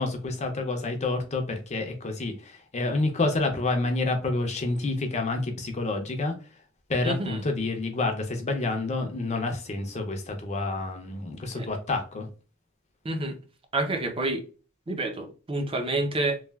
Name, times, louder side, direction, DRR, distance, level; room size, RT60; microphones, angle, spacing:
voice 1, 0.0-6.3 6.9-12.3, left 2 dB, 30° left, 0.5 m, -28 dB
voice 2, 7.0-7.4 11.6-11.7 13.0-13.4 13.7-14.4 14.9-16.4, right 2 dB, 25° right, 0.5 m, -28 dB
3.2 x 2.3 x 2.3 m
head